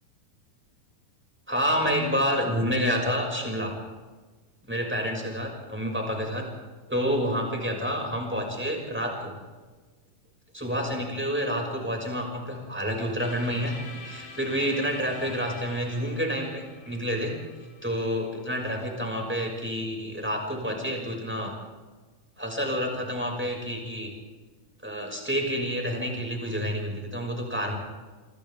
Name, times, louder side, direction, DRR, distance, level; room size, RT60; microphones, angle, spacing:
voice 1, 1.5-3.7 4.6-6.5 6.9-9.3 10.5-13.8 14.0-17.3 17.8-21.5 22.4-24.1 24.8-27.8, equal, 5° right, 1 dB, 6.1 m, -29 dB
sound 1, 13.2-19.1, left 3 dB, 90° left, 4.9 m, -46 dB
28.0 x 26.0 x 3.7 m, 1.3 s
omnidirectional pair, 3.7 m